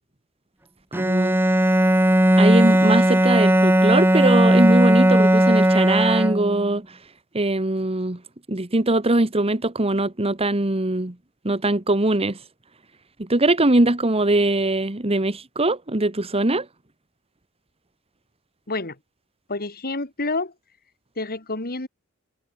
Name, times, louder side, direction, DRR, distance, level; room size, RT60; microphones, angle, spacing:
Bowed string instrument, 0.9-6.7, right 1 dB, 10° right, 1.6 m, -17 dB
voice 1, 0.9-1.4 2.4-6.8 7.3-8.2 8.5-11.1 11.4-12.4 13.2-16.6, right 2 dB, 25° right, 1.5 m, -21 dB
voice 2, 19.5-20.5 21.2-21.9, left 2 dB, 45° left, 3.0 m, -28 dB
head